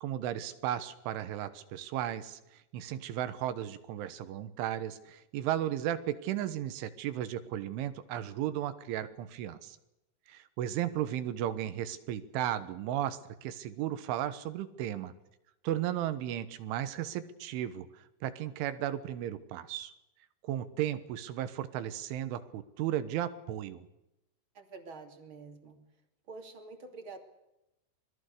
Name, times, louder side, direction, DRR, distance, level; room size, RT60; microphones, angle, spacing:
voice 1, 0.0-2.4 2.7-9.8 10.3-15.1 15.6-19.9 20.4-23.8, right 11 dB, 80° right, 12 dB, 3.7 m, -35 dB
voice 2, 24.5-25.8 26.3-27.2, right 4 dB, 30° right, 6 dB, 2.7 m, -47 dB
26.0 x 20.0 x 6.7 m, 0.91 s
omnidirectional pair, 5.5 m